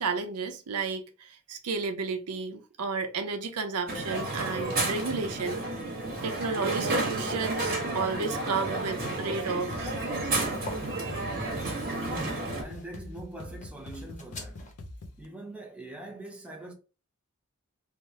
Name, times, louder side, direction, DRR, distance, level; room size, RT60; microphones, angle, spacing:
voice 1, 0.0-5.6 6.2-9.9, right 4 dB, 80° right, 0.6 m, -32 dB
Crowd, 3.9-12.6, right 2 dB, 40° right, 1.2 m, -31 dB
sound 1, 9.6-14.7, left 1 dB, 35° left, 0.8 m, -46 dB
sound 2, 9.7-15.3, left 1 dB, 70° left, 0.5 m, -44 dB
voice 2, 12.0-14.7 15.2-16.7, right 1 dB, 5° right, 0.5 m, -43 dB
3.4 x 2.1 x 2.7 m
head